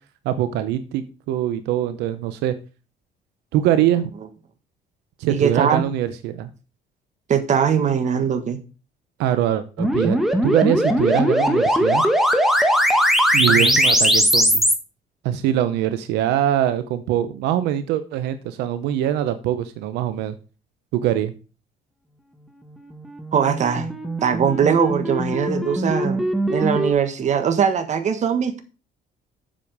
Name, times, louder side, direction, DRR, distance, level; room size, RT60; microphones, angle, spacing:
voice 1, 0.2-2.5 3.5-4.1 5.2-6.5 9.2-12.0 13.3-14.6 15.2-20.4 20.9-21.3, right 11 dB, 90° right, 11 dB, 0.8 m, -23 dB
voice 2, 5.3-5.8 7.3-8.6 13.5-13.8 23.3-23.9 24.2-28.6, right 7 dB, 45° right, 9 dB, 1.5 m, -21 dB
sound 1, 9.8-14.7 23.0-26.9, equal, ahead, 1.4 m, -20 dB
7.6 x 7.1 x 4.8 m, 0.34 s
cardioid pair, 110°, 17 cm